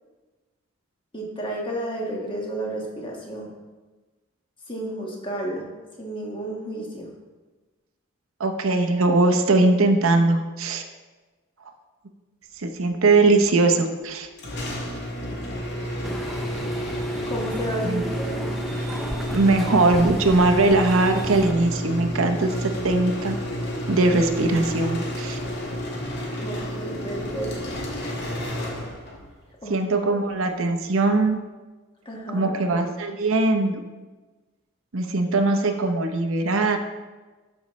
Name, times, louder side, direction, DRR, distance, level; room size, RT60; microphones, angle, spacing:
voice 1, 1.1-3.5 4.7-5.7 6.0-7.1 17.3-18.5 26.4-27.7 29.6-29.8 32.0-32.5, right 1 dB, 25° left, -1 dB, 1.4 m, -31 dB
voice 2, 8.4-10.8 12.6-14.3 17.8-18.0 19.3-23.4 23.9-25.4 29.7-31.4 32.3-33.8 34.9-36.8, right 2 dB, 80° right, 6 dB, 0.8 m, -21 dB
sound 1, 14.4-29.3, equal, 55° left, 1.7 m, -30 dB
sound 2, 16.0-21.5, equal, ahead, 0.4 m, -35 dB
12.5 x 5.5 x 3.1 m, 1.3 s
head